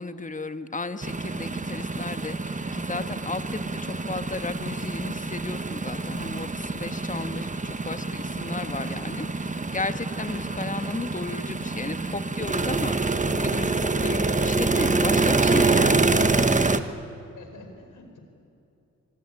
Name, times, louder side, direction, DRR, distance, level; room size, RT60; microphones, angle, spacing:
voice 1, 0.0-16.4, left 3 dB, 25° left, 10 dB, 1.4 m, -34 dB
sound 1, 1.0-16.8, right 3 dB, 25° right, 1.3 m, -26 dB
voice 2, 17.3-18.2, left 3 dB, 85° left, 5 dB, 4.6 m, -47 dB
24.0 x 23.5 x 9.7 m, 2.7 s
cardioid pair, 70°, 30 cm